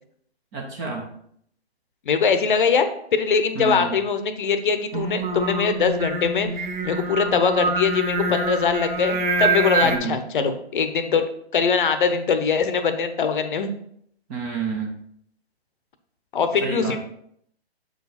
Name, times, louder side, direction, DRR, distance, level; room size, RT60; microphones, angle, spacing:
voice 1, 0.5-1.1 3.5-4.0 9.8-10.2 14.3-14.9 16.6-17.0, right 5 dB, 15° right, 1 dB, 0.6 m, -29 dB
voice 2, 2.1-2.9 3.1-6.5 6.8-11.2 11.5-13.7 16.3-17.0, left 5 dB, 50° left, 9 dB, 0.9 m, -22 dB
Singing, 4.9-10.0, right 2 dB, 45° right, 1.0 m, -25 dB
7.7 x 4.9 x 4.2 m, 0.69 s
hypercardioid pair, 145°, 32 cm